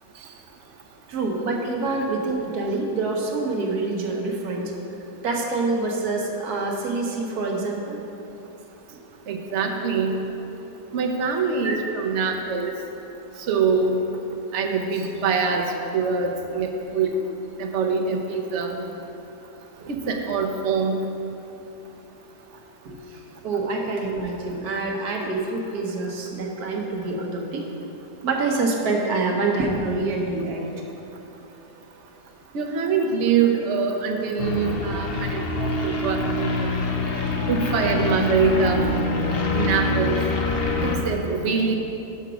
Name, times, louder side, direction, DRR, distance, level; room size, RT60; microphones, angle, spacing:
voice 1, 1.1-4.7 5.2-8.0 8.9-9.0 11.6-11.8 22.8-27.6 28.2-30.7, right 3 dB, 70° right, 0 dB, 1.4 m, -26 dB
voice 2, 9.3-10.1 10.9-12.7 13.5-14.0 14.5-17.1 17.6-18.8 19.9-21.0 32.5-36.5 37.5-38.9 39.5-40.1 40.8-41.8, right 5 dB, 55° right, 3 dB, 0.9 m, -24 dB
sound 1, 34.4-41.0, left 2 dB, 50° left, 0.7 m, -25 dB
5.9 x 5.8 x 6.1 m, 3.0 s
omnidirectional pair, 1.7 m